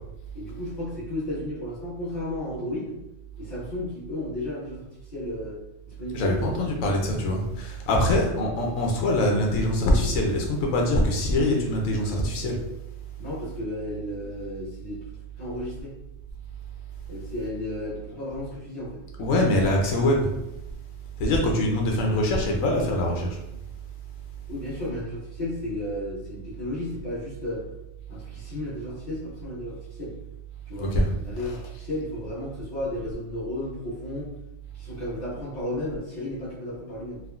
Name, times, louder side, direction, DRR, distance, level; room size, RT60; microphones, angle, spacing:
voice 1, 0.3-3.0 3.4-5.6 5.8-6.6 13.2-15.0 15.4-15.9 17.1-19.0 24.5-27.6 28.1-30.1 30.6-30.9 31.2-34.3 34.7-37.2, left 1 dB, 35° left, -9 dB, 1.3 m, -33 dB
voice 2, 6.1-12.5 19.2-20.3 21.2-23.4 30.8-31.6, left 1 dB, 90° left, 0 dB, 1.0 m, -23 dB
3.5 x 2.1 x 2.3 m, 0.91 s
omnidirectional pair, 1.3 m